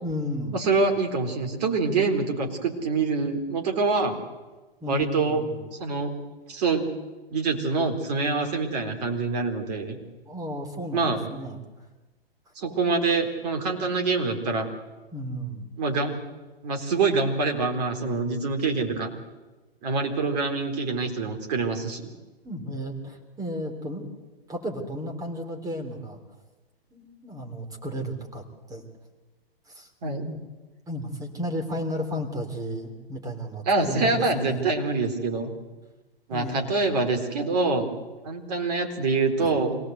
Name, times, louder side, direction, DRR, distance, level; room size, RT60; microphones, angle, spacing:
voice 1, 0.0-0.6 4.8-5.6 10.3-11.6 15.1-15.7 22.4-24.1 24.5-26.2 26.9-28.8 29.7-30.4 30.9-34.6 36.3-36.6 39.4-39.5, equal, 10° right, 3 dB, 3.4 m, -33 dB
voice 2, 0.5-4.2 4.9-5.4 5.8-6.1 6.5-6.9 7.3-10.0 10.9-11.2 12.6-14.7 15.8-16.2 16.6-19.1 19.8-22.1 30.0-30.3 33.7-35.5 36.3-37.9 38.2-39.8, right 4 dB, 40° right, 4 dB, 4.0 m, -25 dB
25.5 x 17.5 x 8.1 m, 1.2 s
figure-of-eight pair, 115°, 30 cm